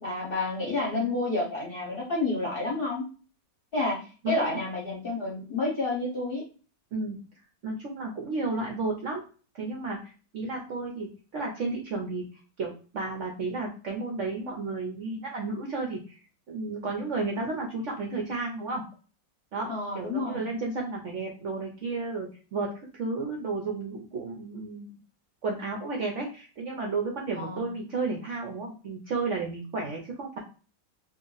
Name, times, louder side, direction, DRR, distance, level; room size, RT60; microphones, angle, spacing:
voice 1, 0.0-3.0 3.7-6.4 19.7-20.4 27.4-27.7, left 2 dB, 45° left, -4 dB, 0.8 m, -30 dB
voice 2, 4.2-4.6 6.9-7.2 7.6-9.2 9.5-12.2 12.6-16.2 16.5-18.8 19.5-24.9 25.4-30.4, right 3 dB, 60° right, 0 dB, 0.8 m, -32 dB
2.8 x 2.5 x 3.9 m, 0.36 s
omnidirectional pair, 1.9 m